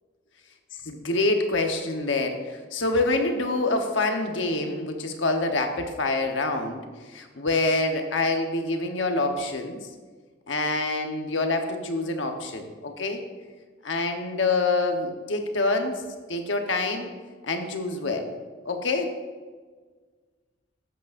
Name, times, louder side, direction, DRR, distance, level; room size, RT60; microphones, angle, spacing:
voice 1, 0.8-6.8 7.1-9.8 10.5-13.2 13.8-16.0 16.3-17.1 17.4-18.3 18.6-19.1, left 2 dB, 85° left, 4 dB, 1.1 m, -26 dB
12.0 x 8.3 x 2.6 m, 1.4 s
head